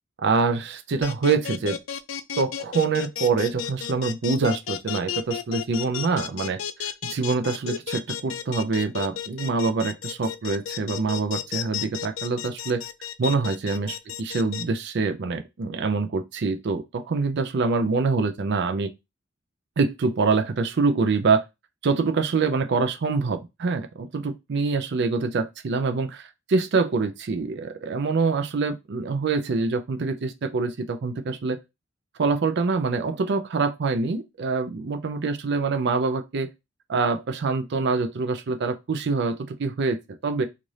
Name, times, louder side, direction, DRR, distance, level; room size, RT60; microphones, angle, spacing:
voice 1, 0.2-1.8 2.4-12.8 13.2-18.9 19.8-21.4 21.8-31.6 32.2-36.5 36.9-40.5, right 4 dB, 60° right, 0.5 m, -25 dB
sound 1, 1.0-14.6, left 9 dB, 75° left, 0.4 m, -32 dB
3.2 x 2.5 x 3.9 m
head